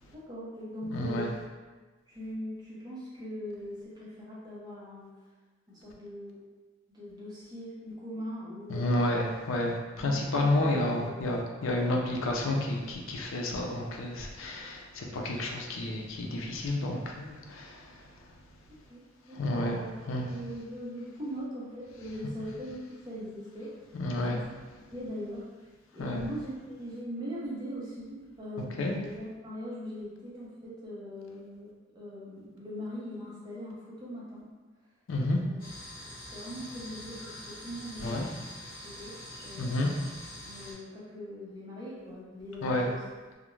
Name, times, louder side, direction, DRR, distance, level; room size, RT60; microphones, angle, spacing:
voice 1, 0.1-1.5 2.1-5.1 5.7-6.4 6.9-9.2 10.0-10.7 11.0-11.2 18.7-19.9 20.3-23.9 24.3-24.4 24.9-25.5 25.9-31.7 31.9-34.4 35.5-35.6 36.1-38.2 38.8-39.9 40.4-43.0, equal, 20° right, -8 dB, 0.6 m, -41 dB
voice 2, 0.8-1.3 8.7-18.3 19.3-20.3 23.9-24.4 26.0-26.2 28.8-29.0 35.1-35.4 38.0-38.3 39.6-39.9 42.6-42.9, left 1 dB, 75° left, 0 dB, 0.4 m, -30 dB
sound 1, 35.6-40.7, left 1 dB, 45° left, 0.8 m, -44 dB
2.4 x 2.0 x 3.0 m, 1.3 s
head